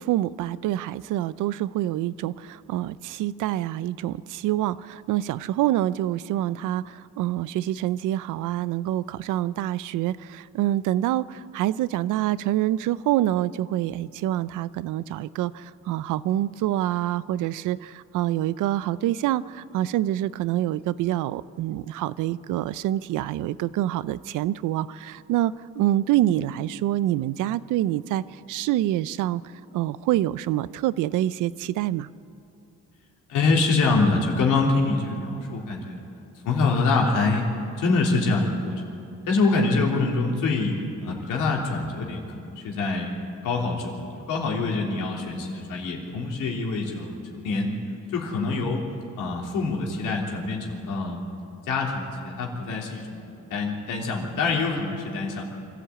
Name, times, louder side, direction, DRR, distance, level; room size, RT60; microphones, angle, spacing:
voice 1, 0.0-28.2 28.5-29.4 29.7-32.1, right 13 dB, 90° right, 17 dB, 0.6 m, -26 dB
voice 2, 33.3-36.0 36.4-37.5 37.8-38.8 39.3-40.8 41.0-43.1 43.4-47.7 48.1-48.8 49.2-51.2 51.7-55.4, left 3 dB, 90° left, -1 dB, 3.4 m, -25 dB
24.5 x 13.5 x 8.7 m, 2.8 s
cardioid pair, 90°, 30 cm